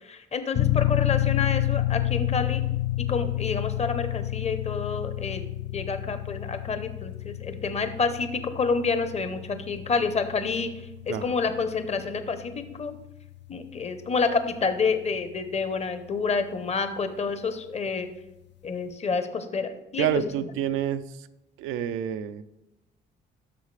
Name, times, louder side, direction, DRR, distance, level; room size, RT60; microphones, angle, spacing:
voice 1, 0.0-2.6 3.0-5.4 5.7-10.7 11.1-12.9 13.5-18.1 18.6-20.1, left 4 dB, 35° left, 9 dB, 0.8 m, -28 dB
sound 1, 0.5-15.0, left 16 dB, 60° left, 0.4 m, -30 dB
voice 2, 20.0-21.3 21.6-22.4, right 10 dB, 90° right, 11 dB, 0.5 m, -28 dB
11.0 x 6.5 x 3.3 m, 0.94 s
cardioid pair, 90°, 20 cm